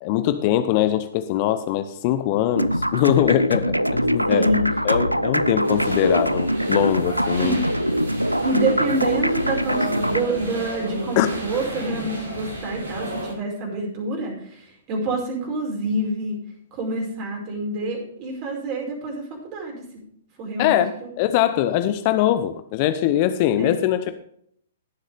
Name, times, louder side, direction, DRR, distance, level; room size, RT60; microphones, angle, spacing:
voice 1, 0.0-4.4 4.8-7.6 11.2-11.3 20.6-24.1, left 12 dB, 35° left, 11 dB, 0.7 m, -22 dB
sound 1, 2.5-10.2, equal, 90° right, 0.5 m, -23 dB
voice 2, 4.3-4.6 7.4-7.6 8.4-16.4 16.7-19.8 20.4-21.1 23.6-23.9, right 2 dB, 30° right, 0 dB, 5.0 m, -27 dB
sound 2, 5.6-13.3, right 1 dB, 65° right, 3.8 m, -33 dB
17.5 x 7.5 x 3.4 m, 0.66 s
figure-of-eight pair, 115°, 0 cm